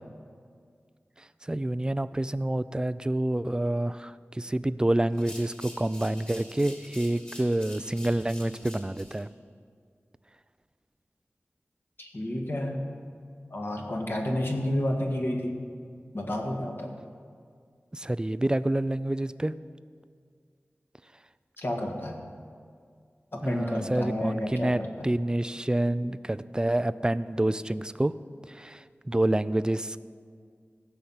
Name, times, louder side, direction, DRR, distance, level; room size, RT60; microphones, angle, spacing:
voice 1, 1.4-9.3 17.9-19.5 23.4-28.1 28.5-30.0, right 1 dB, 20° right, 15 dB, 0.4 m, -28 dB
sound 1, 5.1-9.2, left 1 dB, 25° left, 2.3 m, -47 dB
voice 2, 12.0-12.9 13.5-15.7 16.1-16.9 21.6-22.2 23.3-25.1, left 1 dB, 55° left, 1 dB, 1.8 m, -30 dB
15.5 x 5.8 x 8.0 m, 2.1 s
wide cardioid pair, 70°, 5 cm